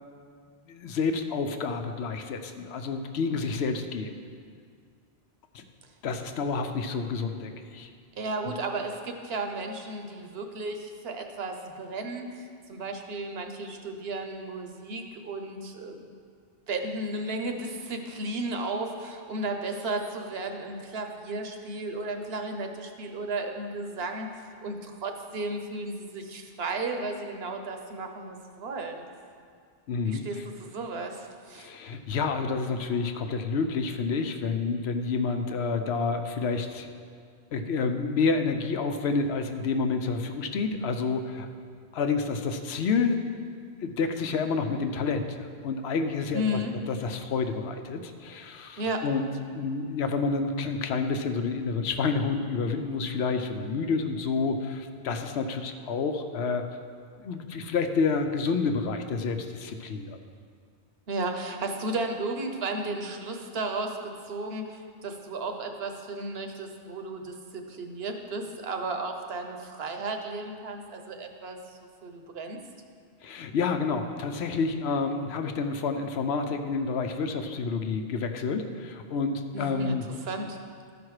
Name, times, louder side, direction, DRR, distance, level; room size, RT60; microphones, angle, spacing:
voice 1, 0.7-4.2 5.5-5.6 6.0-7.9 29.9-30.2 31.6-36.9 37.5-41.5 41.9-43.2 43.8-46.6 46.9-49.3 49.5-56.6 57.2-60.2 73.2-80.1, left 4 dB, 80° left, 7 dB, 0.9 m, -29 dB
voice 2, 8.2-16.1 16.7-29.0 30.1-31.7 46.3-46.7 48.8-49.0 61.1-72.6 79.5-80.0 80.3-80.6, right 2 dB, 70° right, 4 dB, 1.0 m, -34 dB
12.5 x 5.1 x 4.8 m, 2.2 s
omnidirectional pair, 1.1 m